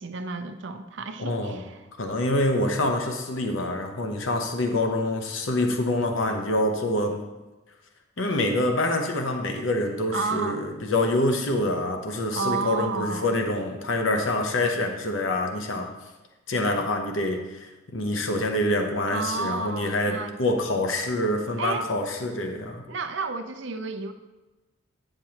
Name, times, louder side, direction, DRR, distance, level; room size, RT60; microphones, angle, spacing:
voice 1, 0.0-1.8 10.1-10.6 12.3-13.3 19.1-20.4 21.6-22.0 22.9-24.1, right 4 dB, 60° right, 8 dB, 0.6 m, -31 dB
voice 2, 1.2-1.6 2.0-7.2 8.2-15.9 16.5-22.8, left 1 dB, 70° left, 4 dB, 0.8 m, -26 dB
9.2 x 6.8 x 2.9 m, 1.1 s
head